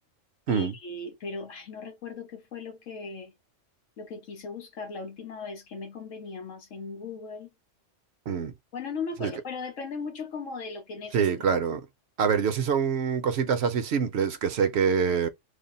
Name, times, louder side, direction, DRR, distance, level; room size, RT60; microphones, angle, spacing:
voice 1, 0.5-3.3 4.0-7.5 8.7-11.3, left 4 dB, 90° left, 1.4 m, -37 dB
voice 2, 11.1-11.9 12.2-15.3, right 6 dB, 65° right, 0.9 m, -25 dB
3.3 x 2.1 x 4.0 m
omnidirectional pair, 1.3 m